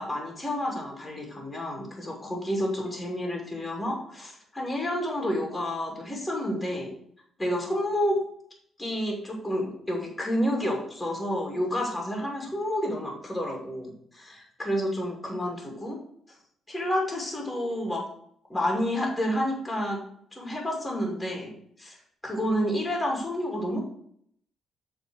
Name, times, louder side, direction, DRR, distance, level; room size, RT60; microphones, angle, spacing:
voice 1, 0.0-6.9 7.4-8.2 8.8-16.0 16.7-18.0 18.5-20.0 20.3-22.0 22.2-23.8, equal, 15° left, -1 dB, 2.5 m, -30 dB
7.0 x 3.9 x 6.2 m, 0.67 s
cardioid pair, 90°, 0 cm